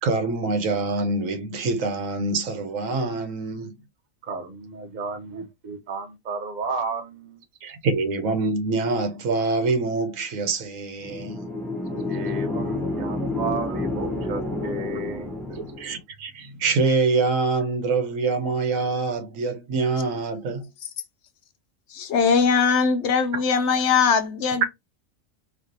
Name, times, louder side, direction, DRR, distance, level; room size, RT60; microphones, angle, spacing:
voice 1, 0.0-3.8 7.6-11.5 14.6-14.7 15.6-20.7, right 3 dB, 75° right, 1.1 m, -25 dB
voice 2, 4.2-7.4 12.1-15.8, right 3 dB, 40° right, 0.8 m, -33 dB
sound 1, 11.0-16.0, left 1 dB, ahead, 0.3 m, -29 dB
voice 3, 21.9-24.7, left 5 dB, 65° left, 0.8 m, -21 dB
4.4 x 2.2 x 2.6 m
omnidirectional pair, 1.4 m